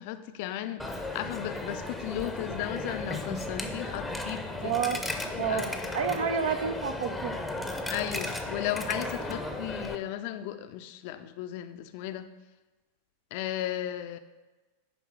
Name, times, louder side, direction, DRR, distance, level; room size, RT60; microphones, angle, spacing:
voice 1, 0.0-4.8 5.3-5.6 7.9-12.3 13.3-14.2, left 12 dB, 50° left, 10 dB, 0.5 m, -35 dB
Coin (dropping), 0.8-10.0, left 2 dB, 5° left, 0.8 m, -35 dB
voice 2, 4.6-5.0 5.4-7.3, right 6 dB, 60° right, 9 dB, 0.7 m, -29 dB
9.4 x 3.5 x 6.0 m, 1.2 s
figure-of-eight pair, 90°, 0 cm